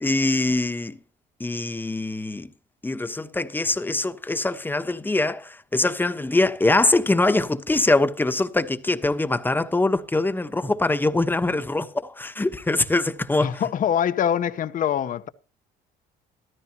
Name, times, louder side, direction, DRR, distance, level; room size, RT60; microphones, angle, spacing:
voice 1, 0.0-1.0 1.4-2.5 2.8-13.6, left 2 dB, 10° left, 1.1 m, -23 dB
voice 2, 13.4-15.3, left 9 dB, 50° left, 1.0 m, -24 dB
14.0 x 13.5 x 2.9 m
cardioid pair, 110°, 17 cm